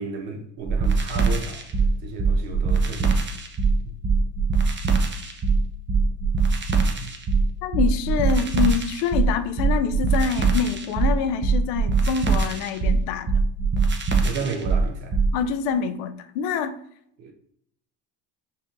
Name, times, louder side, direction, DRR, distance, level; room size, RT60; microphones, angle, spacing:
voice 1, 0.0-3.2 3.8-4.0 7.0-7.1 14.2-15.2 17.2-17.3, right 5 dB, 65° right, 1.0 m, -34 dB
sound 1, 0.7-15.3, right 4 dB, 25° right, 0.7 m, -22 dB
voice 2, 7.6-13.3 15.3-16.7, left 6 dB, 85° left, 0.6 m, -26 dB
5.4 x 2.7 x 2.5 m
supercardioid pair, 75°, 48 cm